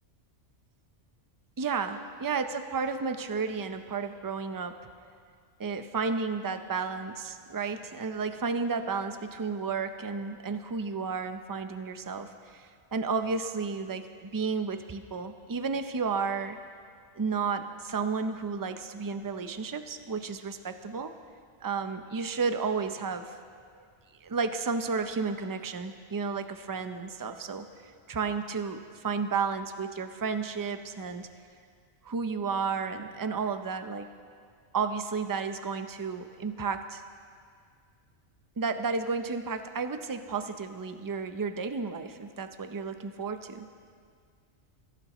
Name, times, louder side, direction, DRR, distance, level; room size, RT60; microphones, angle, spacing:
voice 1, 1.6-4.8 5.6-16.6 17.2-21.1 21.6-23.3 24.2-27.7 28.1-31.3 32.0-34.1 34.7-37.0 38.6-43.7, right 5 dB, 30° right, 8 dB, 0.4 m, -32 dB
22.5 x 15.5 x 3.1 m, 2.1 s
omnidirectional pair, 1.3 m